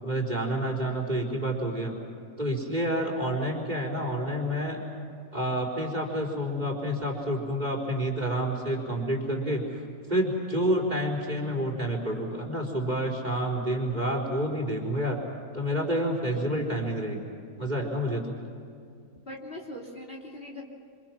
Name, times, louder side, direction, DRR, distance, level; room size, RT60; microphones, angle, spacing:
voice 1, 0.0-2.0 2.4-4.8 5.3-9.6 10.1-15.2 15.5-17.3 17.6-18.3, equal, 20° right, 1 dB, 4.2 m, -29 dB
voice 2, 19.3-20.6, left 1 dB, 30° left, -1 dB, 3.0 m, -41 dB
27.5 x 26.5 x 6.1 m, 2.5 s
omnidirectional pair, 2.0 m